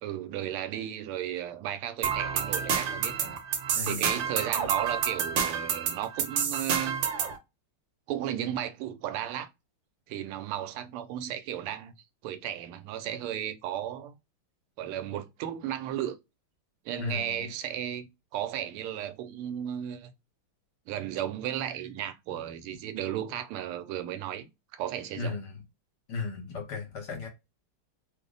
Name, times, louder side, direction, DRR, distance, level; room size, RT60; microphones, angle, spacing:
voice 1, 0.0-3.4 3.8-7.0 8.1-9.5 10.1-11.9 12.2-14.2 14.8-16.2 16.8-20.1 20.9-25.4, right 11 dB, 90° right, 1.5 m, -35 dB
sound 1, 2.0-7.4, right 7 dB, 70° right, 1.4 m, -29 dB
voice 2, 3.7-4.1 17.0-17.5 25.2-25.6 26.1-27.3, left 4 dB, 60° left, 1.4 m, -35 dB
3.4 x 2.0 x 3.8 m
omnidirectional pair, 2.3 m